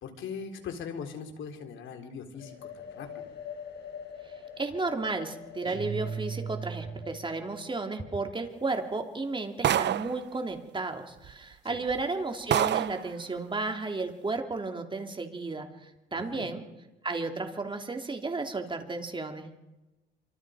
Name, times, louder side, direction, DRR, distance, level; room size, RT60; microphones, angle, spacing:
voice 1, 0.0-3.3 11.6-11.8 16.1-16.5, left 6 dB, 75° left, 5 dB, 3.8 m, -40 dB
sound 1, 2.3-10.0, left 7 dB, 60° left, 4.7 m, -46 dB
voice 2, 4.6-16.6 17.0-19.5, right 3 dB, 25° right, 4 dB, 3.4 m, -33 dB
sound 2, 5.6-7.4, right 6 dB, 40° right, 5.1 m, -37 dB
sound 3, 9.6-10.2 11.2-11.3 11.9-12.0 12.5-13.0, right 10 dB, 60° right, 0.8 m, -26 dB
27.0 x 25.5 x 5.1 m, 1.0 s
cardioid pair, 90°, 20 cm